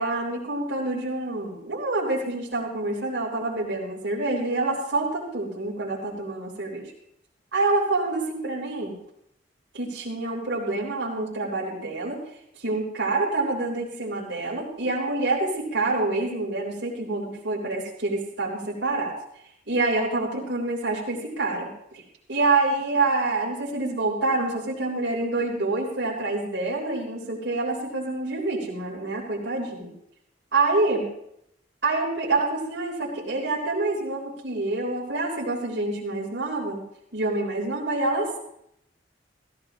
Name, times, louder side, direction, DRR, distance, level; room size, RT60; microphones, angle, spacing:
voice 1, 0.0-6.9 7.5-8.9 9.7-12.2 12.6-19.2 19.7-22.0 22.3-29.9 30.5-31.1 31.8-36.8 37.1-38.4, right 2 dB, 90° right, -4 dB, 3.8 m, -27 dB
17.0 x 14.5 x 2.9 m, 0.73 s
head